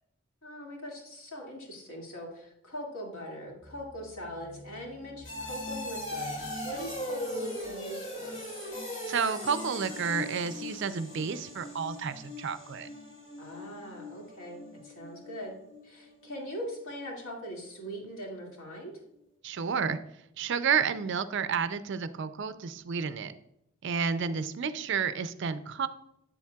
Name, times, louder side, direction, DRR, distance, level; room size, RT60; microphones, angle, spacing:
voice 1, 0.4-6.3 6.6-8.4 13.4-15.6 15.8-18.9 24.2-24.4, equal, 70° left, -1 dB, 2.3 m, -41 dB
sound 1, 3.6-16.3 16.6-17.0 17.4-17.5, left 1 dB, 35° left, 2.3 m, -40 dB
voice 2, 9.1-12.9 19.4-20.0 20.4-23.3 23.8-25.9, right 6 dB, 55° right, 12 dB, 0.4 m, -31 dB
8.3 x 7.2 x 2.3 m, 0.80 s
head